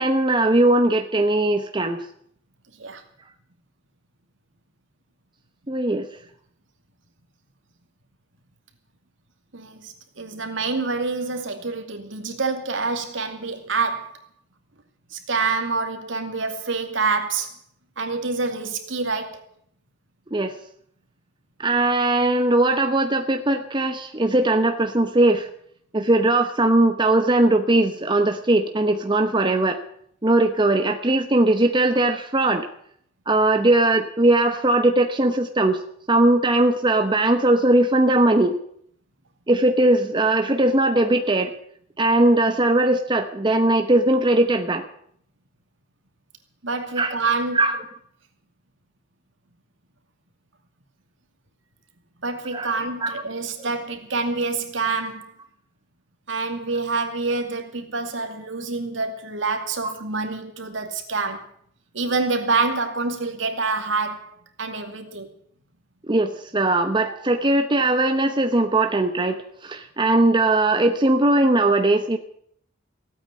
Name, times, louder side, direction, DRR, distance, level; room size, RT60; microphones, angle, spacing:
voice 1, 0.0-2.0 5.7-6.1 20.3-20.5 21.6-25.5 25.9-29.8 30.2-32.7 33.3-35.8 36.1-38.6 39.5-41.5 42.0-44.8 47.0-47.1 47.5-47.8 52.5-52.7 53.0-53.2 59.8-59.9 66.1-72.2, right 2 dB, 25° right, 6 dB, 1.0 m, -19 dB
voice 2, 9.5-14.2 15.1-17.5 18.0-19.4 46.6-47.6 52.2-55.3 56.3-61.5 61.9-64.3 64.6-65.3 67.0-67.2, right 4 dB, 70° right, 5 dB, 2.4 m, -27 dB
16.5 x 8.9 x 9.6 m, 0.66 s
head